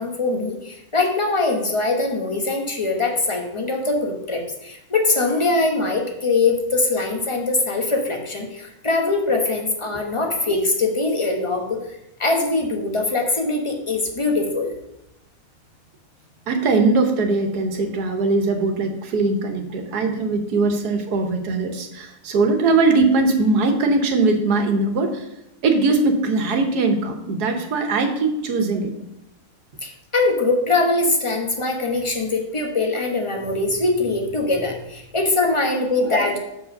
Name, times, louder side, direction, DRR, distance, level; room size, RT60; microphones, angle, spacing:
voice 1, 0.0-11.8 12.2-14.7 29.8-36.4, left 3 dB, 20° left, 1 dB, 1.1 m, -22 dB
voice 2, 16.5-25.3 25.6-28.9, right 3 dB, 90° right, 5 dB, 1.6 m, -20 dB
6.0 x 4.8 x 6.4 m, 0.84 s
omnidirectional pair, 1.6 m